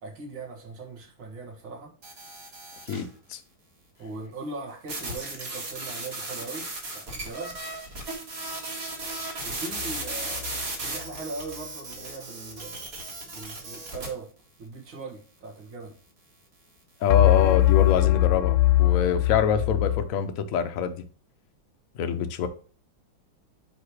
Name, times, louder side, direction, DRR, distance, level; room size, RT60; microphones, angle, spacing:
voice 1, 0.0-1.9 4.0-6.7 6.9-7.6 9.4-12.9 13.2-14.3 14.6-15.9, right 3 dB, 80° right, 2.4 m, -39 dB
sound 1, 2.0-3.1 4.9-14.1, right 2 dB, 45° right, 1.9 m, -36 dB
voice 2, 2.9-3.4 17.0-21.0 22.0-22.5, left 8 dB, 65° left, 0.8 m, -25 dB
sound 2, 9.7-10.6 17.1-20.1, left 16 dB, 90° left, 1.4 m, -22 dB
5.1 x 4.8 x 4.7 m
omnidirectional pair, 2.2 m